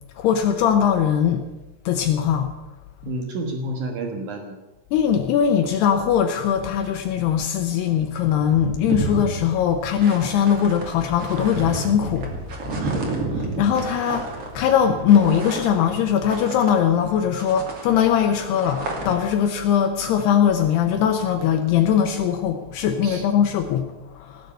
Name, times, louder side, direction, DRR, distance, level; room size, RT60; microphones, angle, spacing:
voice 1, 0.2-1.4 1.9-2.5 4.9-12.3 13.6-14.3 14.5-24.5, left 8 dB, 85° left, 6 dB, 2.3 m, -20 dB
voice 2, 3.0-4.6 12.8-13.1 23.0-23.3, right 2 dB, 80° right, 3 dB, 1.7 m, -30 dB
sound 1, 7.9-8.0 8.2-17.1 17.4-19.4, right 3 dB, 40° right, 2.5 m, -31 dB
18.5 x 8.1 x 8.4 m, 1.0 s
omnidirectional pair, 5.9 m